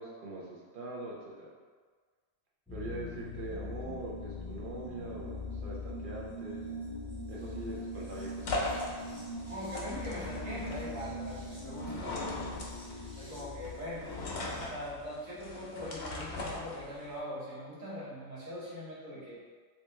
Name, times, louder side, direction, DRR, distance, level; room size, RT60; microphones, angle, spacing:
voice 1, 0.0-1.5 2.7-6.7 7.3-8.6, right 2 dB, 50° right, -4 dB, 0.7 m, -42 dB
sound 1, 2.7-14.7, left 1 dB, 5° left, 0.6 m, -42 dB
sound 2, 7.3-17.2, left 2 dB, 65° left, 0.8 m, -40 dB
voice 2, 9.5-12.2 13.2-14.1 14.6-19.4, equal, 80° right, -7 dB, 1.4 m, -41 dB
3.0 x 2.9 x 3.2 m, 1.5 s
omnidirectional pair, 1.4 m